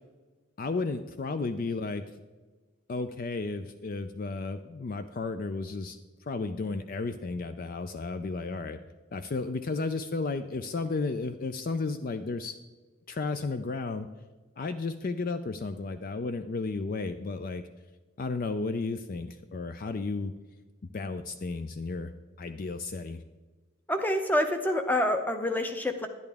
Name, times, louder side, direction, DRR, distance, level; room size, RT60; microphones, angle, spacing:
voice 1, 0.6-2.0 2.9-6.0 6.3-8.8 9.1-12.6 13.1-14.1 14.6-17.6 18.2-20.3 20.9-22.1 22.4-23.2, left 3 dB, 40° left, 10 dB, 0.3 m, -33 dB
voice 2, 23.9-26.1, left 1 dB, 10° left, 6 dB, 0.7 m, -27 dB
10.5 x 10.5 x 3.4 m, 1.3 s
head